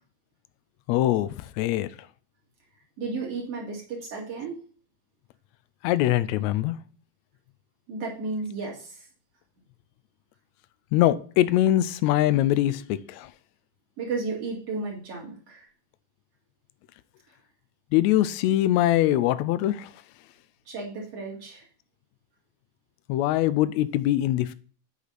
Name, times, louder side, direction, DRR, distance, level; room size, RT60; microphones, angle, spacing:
voice 1, 0.9-1.9 5.8-6.7 10.9-13.3 17.9-19.9 23.1-24.5, left 14 dB, 80° left, 1.7 m, -23 dB
voice 2, 3.0-4.6 7.9-9.1 14.0-15.7 20.7-21.6, right 3 dB, 55° right, 3.0 m, -33 dB
8.2 x 4.9 x 4.0 m
omnidirectional pair, 3.6 m